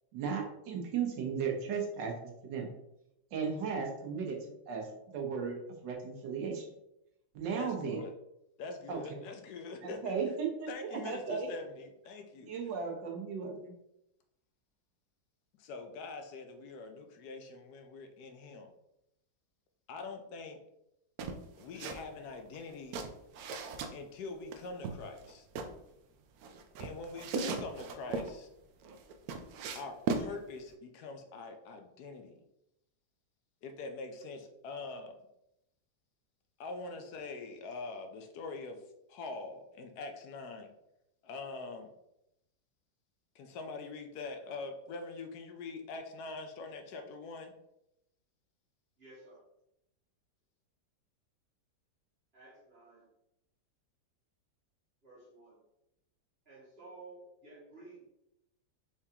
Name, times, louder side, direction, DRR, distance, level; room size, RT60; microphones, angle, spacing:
voice 1, 0.1-2.7 3.3-4.4 4.7-4.9 5.1-5.6 5.8-6.7 7.3-8.0 8.9-9.2 9.8-11.5 12.4-13.8, right 6 dB, 90° right, 2 dB, 1.5 m, -36 dB
voice 2, 7.6-8.1 8.6-10.1 10.7-12.5 15.6-18.7 19.9-20.6 21.6-23.0 23.9-25.5 26.8-28.5 29.7-32.4 33.6-35.2 36.6-38.8 39.1-40.7 41.2-41.9 43.3-47.5, left 3 dB, 70° left, 5 dB, 1.1 m, -44 dB
sound 1, 21.2-22.0 22.3-23.9 24.5-25.7 26.4-28.3 28.8-30.3, right 4 dB, 70° right, 0.9 m, -37 dB
voice 3, 49.0-49.4 52.3-53.1 55.0-55.6 56.5-58.0, right 2 dB, 35° right, -7 dB, 2.0 m, -53 dB
4.6 x 3.6 x 2.8 m, 0.84 s
omnidirectional pair, 1.9 m